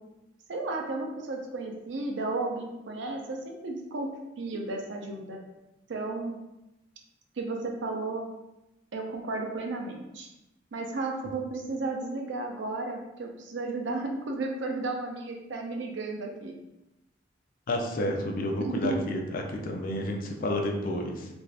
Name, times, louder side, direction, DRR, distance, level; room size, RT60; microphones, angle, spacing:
voice 1, 0.5-4.1 4.4-5.4 5.9-6.4 7.4-8.3 8.9-10.3 10.7-16.6 18.6-19.0, right 3 dB, 85° right, 2 dB, 0.5 m, -33 dB
voice 2, 17.7-21.3, left 1 dB, 50° left, 2 dB, 0.4 m, -30 dB
2.5 x 2.3 x 3.2 m, 0.94 s
head